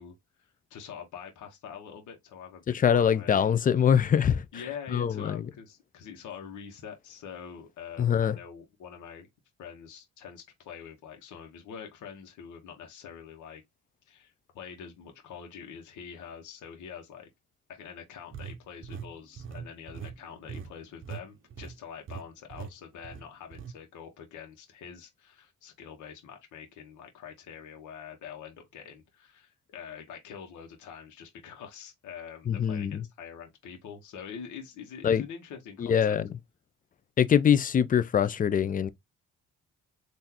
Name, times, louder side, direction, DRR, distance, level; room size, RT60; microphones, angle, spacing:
voice 1, 0.0-3.5 4.5-9.3 9.6-13.6 14.1-17.3 17.7-36.2, left 7 dB, 75° left, 1.1 m, -45 dB
voice 2, 2.7-4.5 4.9-5.5 8.0-8.4 32.5-33.0 35.0-35.2 35.8-36.3 37.2-38.9, left 8 dB, 30° left, 0.4 m, -23 dB
sound 1, 18.3-21.2 21.5-21.8 22.1-22.2 22.5-22.7 23.0-23.7, right 7 dB, 40° right, 0.6 m, -41 dB
3.7 x 2.6 x 2.8 m
cardioid pair, 90°, 30 cm